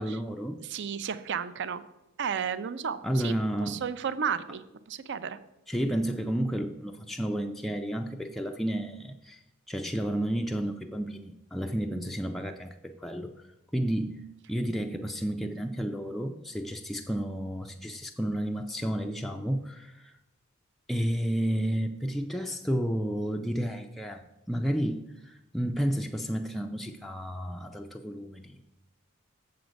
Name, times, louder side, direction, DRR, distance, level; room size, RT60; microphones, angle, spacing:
voice 1, 0.0-0.6 3.0-3.8 5.7-9.4 9.7-13.5 13.7-20.1 20.9-28.6, equal, ahead, 2 dB, 0.3 m, -31 dB
voice 2, 0.6-1.8 2.2-3.3 3.6-4.6 4.9-5.4, right 7 dB, 55° right, 13 dB, 0.5 m, -33 dB
7.7 x 6.9 x 5.1 m, 0.93 s
head